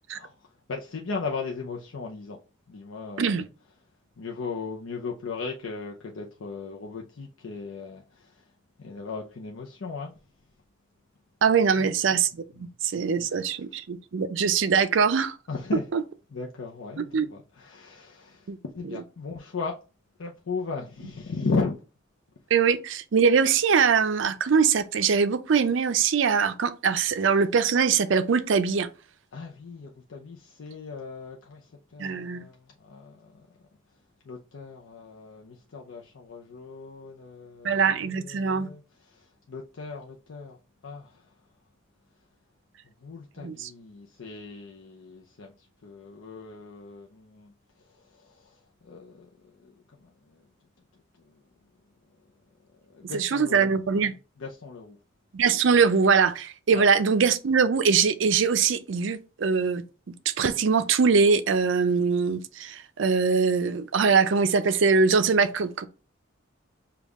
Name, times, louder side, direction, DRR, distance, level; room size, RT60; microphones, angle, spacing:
voice 1, 0.1-2.4 2.7-3.4 4.2-8.5 8.8-10.1 11.8-11.9 12.5-12.7 13.3-13.6 15.5-15.9 16.3-19.8 20.2-21.8 29.3-33.6 34.2-40.6 40.8-41.3 42.8-50.5 51.2-51.4 52.9-53.7 54.4-55.0 56.7-56.9, left 4 dB, 75° left, 0.6 m, -37 dB
voice 2, 11.4-12.3 12.6-15.3 15.9-16.0 17.1-17.3 18.5-18.6 22.5-28.9 32.0-32.4 37.6-38.7 43.4-43.7 53.1-54.1 55.3-65.9, right 5 dB, 65° right, 0.5 m, -22 dB
5.3 x 2.3 x 3.5 m
head